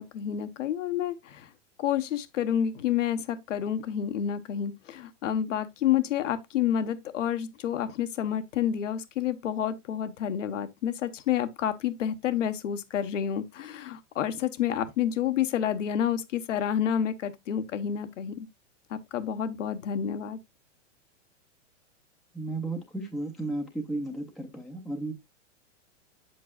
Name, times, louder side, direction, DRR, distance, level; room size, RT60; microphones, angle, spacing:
voice 1, 0.0-1.5 1.8-18.5 18.9-20.4, left 9 dB, 80° left, 1.1 m, -29 dB
voice 2, 22.3-25.1, right 2 dB, ahead, 0.5 m, -34 dB
8.3 x 7.7 x 2.3 m
hypercardioid pair, 150°, 37 cm